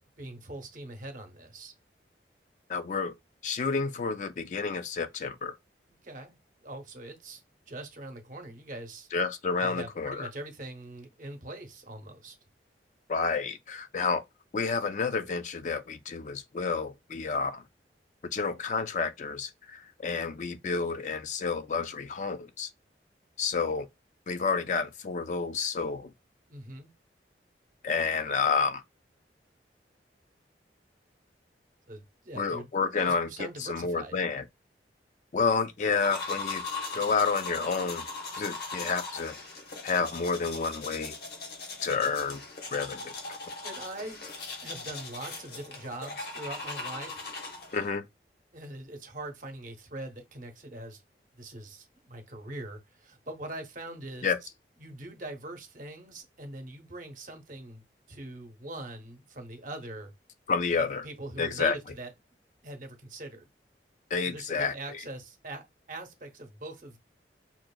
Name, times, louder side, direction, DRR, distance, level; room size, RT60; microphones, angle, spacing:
voice 1, 0.2-1.7 6.0-7.4 7.7-9.1 9.6-12.4 26.5-26.9 31.9-34.1 43.6-44.2 44.6-47.3 48.5-51.0 51.4-54.3 54.8-60.1 61.0-62.1 62.6-63.5 64.2-67.0, right 2 dB, 45° right, 0.8 m, -42 dB
voice 2, 2.7-3.1 3.4-5.6 9.1-10.3 13.1-14.2 14.5-17.6 18.2-22.7 23.4-23.9 24.3-26.1 27.8-28.8 32.4-33.3 33.6-34.4 35.3-36.6 36.9-38.1 38.4-39.4 39.8-41.1 41.8-42.4 42.7-43.1 47.7-48.0 54.2-54.4 60.5-61.0 61.4-61.8 64.1-64.7, left 5 dB, 45° left, 0.3 m, -29 dB
sound 1, 35.9-47.9, left 3 dB, 60° left, 1.0 m, -39 dB
5.8 x 2.5 x 2.2 m
head